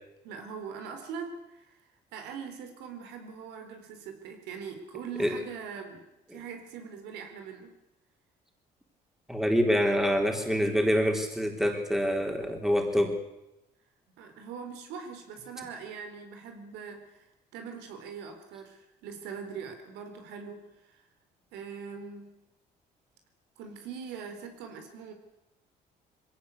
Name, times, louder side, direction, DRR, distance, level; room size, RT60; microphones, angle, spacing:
voice 1, 0.2-7.7 14.2-21.0 21.5-22.3 23.6-25.1, right 6 dB, 90° right, 6 dB, 3.9 m, -42 dB
voice 2, 9.3-13.2, equal, ahead, 3 dB, 3.9 m, -26 dB
21.5 x 17.0 x 8.4 m, 0.91 s
cardioid pair, 110°, 17 cm